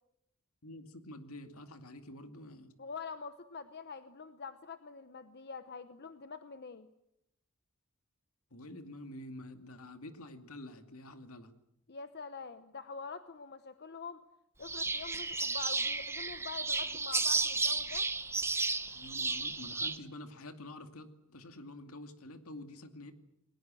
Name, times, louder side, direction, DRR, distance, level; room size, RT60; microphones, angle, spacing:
voice 1, 0.6-2.7 8.5-11.5 18.9-23.1, left 1 dB, 75° left, 7 dB, 2.5 m, -48 dB
voice 2, 2.8-6.9 11.9-14.2 14.6-18.1, left 5 dB, 50° left, 10 dB, 1.0 m, -45 dB
sound 1, 14.6-20.0, right 3 dB, 10° right, 1.0 m, -33 dB
29.0 x 21.0 x 7.7 m, 0.80 s
head